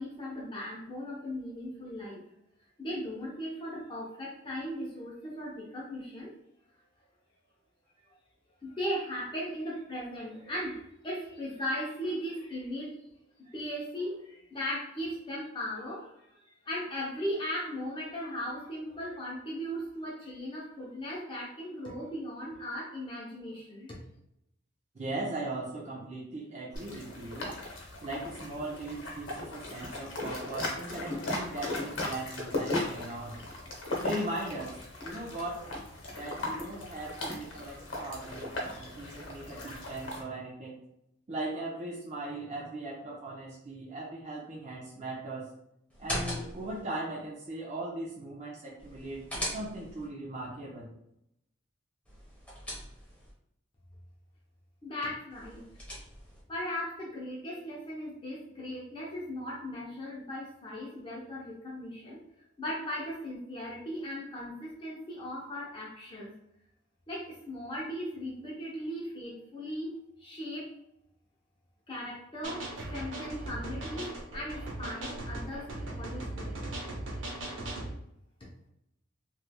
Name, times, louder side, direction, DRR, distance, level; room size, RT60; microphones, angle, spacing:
voice 1, 0.0-2.2 2.8-6.3 8.6-12.9 13.4-16.1 16.4-24.0 54.8-55.6 56.5-62.2 62.6-66.3 67.1-70.7 71.9-76.5, equal, 25° left, -5 dB, 0.7 m, -38 dB
voice 2, 24.9-27.6 28.0-33.4 34.0-34.8 35.0-35.6 36.1-40.8 41.3-45.5 46.0-50.9, right 2 dB, 35° right, -4 dB, 0.5 m, -39 dB
sound 1, 26.7-40.2, left 2 dB, 70° left, 0.9 m, -37 dB
sound 2, 45.9-46.8 48.8-50.1 52.1-53.3 55.3-56.4, left 1 dB, 5° left, 1.0 m, -39 dB
sound 3, 72.4-77.9, right 1 dB, 70° right, 0.8 m, -38 dB
3.2 x 3.1 x 2.2 m, 0.78 s
head